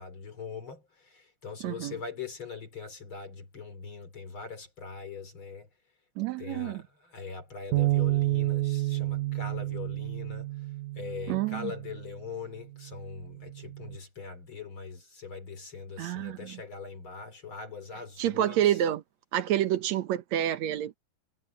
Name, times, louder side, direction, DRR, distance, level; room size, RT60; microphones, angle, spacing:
voice 1, 0.0-5.7 6.4-10.5 11.0-18.8, left 5 dB, 40° left, 3.6 m, -42 dB
voice 2, 1.6-2.0 6.2-6.8 11.3-11.7 16.0-16.6 18.2-19.0 19.3-21.0, right 11 dB, 70° right, 2.3 m, -28 dB
Bass guitar, 7.7-12.1 12.8-14.0, right 18 dB, 90° right, 2.2 m, -30 dB
omnidirectional pair, 3.5 m